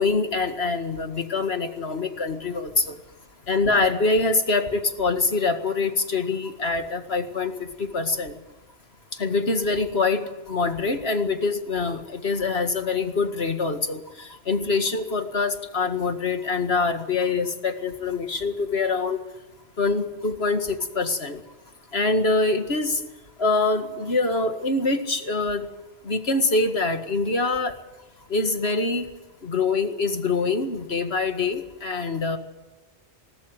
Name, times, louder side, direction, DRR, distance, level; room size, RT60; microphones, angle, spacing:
voice 1, 0.0-3.0 3.5-8.4 9.1-19.2 19.8-21.4 21.9-23.0 23.4-25.7 26.0-27.8 28.3-29.1 29.4-32.4, left 3 dB, 60° left, 7 dB, 2.1 m, -24 dB
20.0 x 19.5 x 7.9 m, 1.1 s
omnidirectional pair, 1.2 m